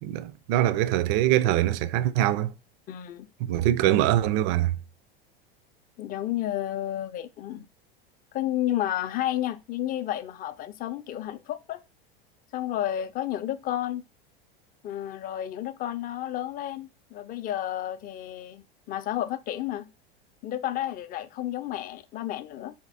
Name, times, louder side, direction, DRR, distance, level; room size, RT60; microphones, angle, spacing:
voice 1, 0.0-2.5 3.4-4.7, right 13 dB, 55° right, 0.5 m, -23 dB
voice 2, 2.9-3.3 6.0-7.7 8.3-11.8 12.5-14.0 14.8-19.9 20.4-22.7, left 12 dB, 30° left, 0.5 m, -31 dB
4.2 x 2.9 x 4.1 m
hypercardioid pair, 100°, 30 cm